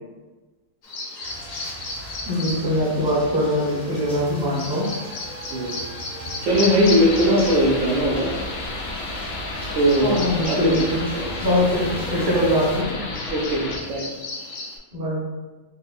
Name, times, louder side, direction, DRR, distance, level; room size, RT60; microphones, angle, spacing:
Bird vocalization bird call bird song, 0.8-14.8, left 2 dB, 70° left, 1.1 m, -36 dB
sound 1, 1.2-12.8, equal, 10° left, 0.3 m, -38 dB
voice 1, 2.2-4.9 10.0-11.0 11.4-13.0 14.9-15.2, equal, 20° right, -5 dB, 0.7 m, -22 dB
voice 2, 5.5-5.8 6.4-8.3 9.7-10.2 10.4-10.9 11.1-11.3 13.3-14.0, equal, 70° right, -2 dB, 1.0 m, -20 dB
sound 2, 6.5-13.8, left 2 dB, 85° left, 1.1 m, -32 dB
4.1 x 2.4 x 2.6 m, 1.2 s
omnidirectional pair, 1.5 m